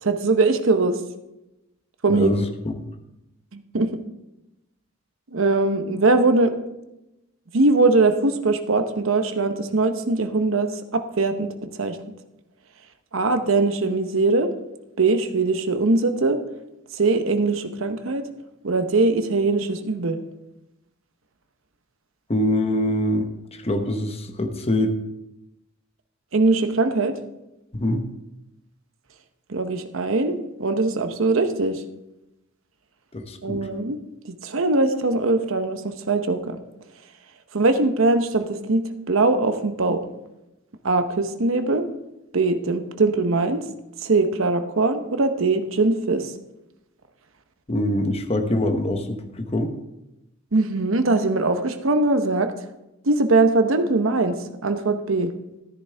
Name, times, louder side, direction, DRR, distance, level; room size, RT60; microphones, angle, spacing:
voice 1, 0.0-1.0 2.0-2.3 3.5-3.9 5.3-6.6 7.5-11.5 11.8-12.0 13.1-14.5 15.0-16.4 16.9-18.2 18.6-20.2 26.3-27.1 29.5-31.8 33.4-34.0 34.3-36.6 37.5-40.0 40.8-41.9 42.3-43.6 44.0-46.3 50.5-52.5 53.0-54.4 54.6-55.3, right 3 dB, 75° right, 8 dB, 0.9 m, -21 dB
voice 2, 2.1-2.4 2.8-2.9 22.3-24.9 27.7-28.1 33.1-33.6 47.7-49.7, left 1 dB, 30° left, 5 dB, 1.0 m, -24 dB
13.5 x 10.0 x 3.4 m, 0.93 s
head